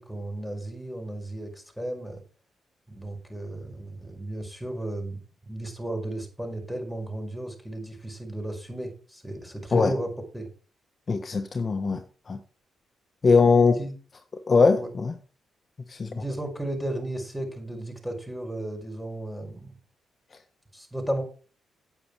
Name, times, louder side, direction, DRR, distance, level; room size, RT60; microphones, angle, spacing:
voice 1, 0.0-2.2 2.9-10.5 13.4-13.9 14.8-14.9 16.1-19.8 20.7-21.2, right 1 dB, ahead, 1 dB, 5.1 m, -34 dB
voice 2, 11.1-12.4 13.2-13.8 14.5-15.1 15.9-16.2 20.3-20.4, left 4 dB, 40° left, 6 dB, 1.3 m, -21 dB
8.8 x 8.7 x 4.8 m, 0.37 s
cardioid pair, 75°, 0 cm